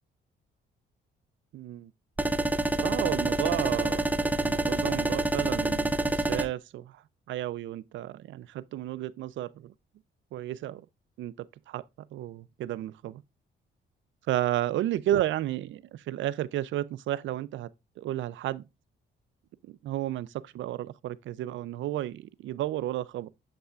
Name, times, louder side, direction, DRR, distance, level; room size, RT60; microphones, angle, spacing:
voice 1, 1.5-1.9 2.8-7.0 7.3-9.7 10.3-10.8 11.2-11.8 12.1-13.2 14.3-17.7 18.0-18.6 19.7-23.3, right 13 dB, 75° right, 0.5 m, -32 dB
sound 1, 2.2-6.5, right 2 dB, 10° right, 0.7 m, -27 dB
7.7 x 5.5 x 2.4 m
cardioid pair, 90°, 20 cm